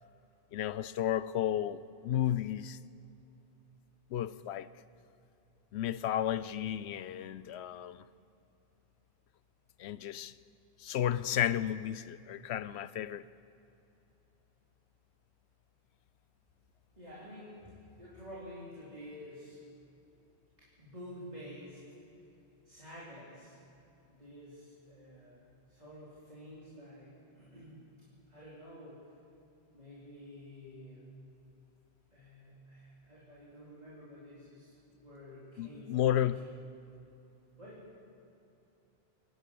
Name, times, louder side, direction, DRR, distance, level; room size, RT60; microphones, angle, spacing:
voice 1, 0.5-2.8 4.1-4.7 5.7-8.0 9.8-10.3 10.8-13.2 35.6-36.4, left 11 dB, 85° left, 0.9 m, -33 dB
voice 2, 17.0-19.6 20.6-21.8 22.6-23.6 24.1-27.9 28.3-29.1 29.7-31.1 32.1-36.2 37.6-37.8, equal, 40° right, 4.3 m, -50 dB
27.5 x 11.5 x 8.5 m
omnidirectional pair, 1.1 m